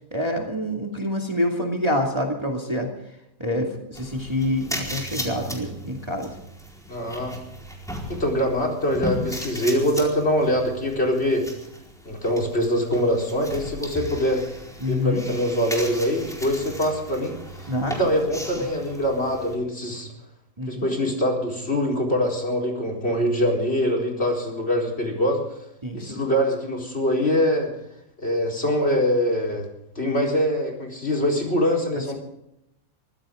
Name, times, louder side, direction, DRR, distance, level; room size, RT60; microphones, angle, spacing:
voice 1, 0.1-2.9 3.4-6.3 14.8-15.2 17.7-18.1 18.6-18.7 20.6-20.9 25.8-26.2, left 1 dB, 15° right, 1 dB, 2.4 m, -26 dB
sound 1, 3.9-19.6, equal, ahead, 4.3 m, -36 dB
voice 2, 6.9-7.4 8.1-11.4 12.0-14.4 14.9-17.3 17.9-20.1 20.7-25.4 25.9-27.7 28.2-29.6 30.0-32.1, equal, 35° left, 2 dB, 4.5 m, -23 dB
23.5 x 15.5 x 3.8 m, 0.82 s
omnidirectional pair, 1.8 m